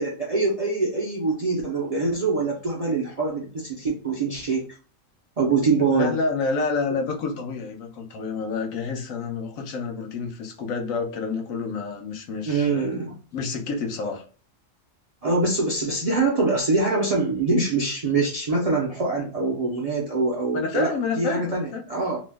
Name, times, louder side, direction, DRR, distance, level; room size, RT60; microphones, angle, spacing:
voice 1, 0.0-4.7 5.4-6.2 12.5-13.2 15.2-22.2, right 3 dB, 50° right, -2 dB, 0.4 m, -24 dB
voice 2, 5.9-12.9 13.3-14.2 20.5-21.8, left 4 dB, 80° left, 3 dB, 1.1 m, -29 dB
3.0 x 2.0 x 3.3 m, 0.39 s
omnidirectional pair, 1.4 m